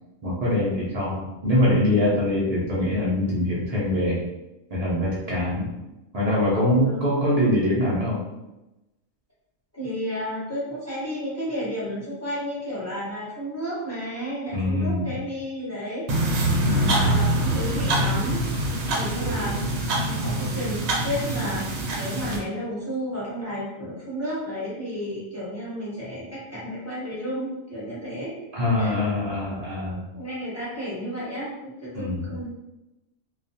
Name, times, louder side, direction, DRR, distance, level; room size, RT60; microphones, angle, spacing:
voice 1, 0.2-4.2 4.7-5.7 6.1-8.2 14.5-15.1 16.6-17.2 28.5-30.0 31.9-32.2, left 1 dB, 90° right, -7 dB, 0.3 m, -23 dB
voice 2, 6.8-7.2 9.7-16.0 16.7-18.4 18.8-19.6 20.0-28.4 28.8-28.9 30.1-32.5, equal, 10° left, -10 dB, 1.1 m, -32 dB
sound 1, 16.1-22.4, right 1 dB, 65° right, 0.7 m, -24 dB
2.3 x 2.2 x 2.6 m, 0.98 s
omnidirectional pair, 1.4 m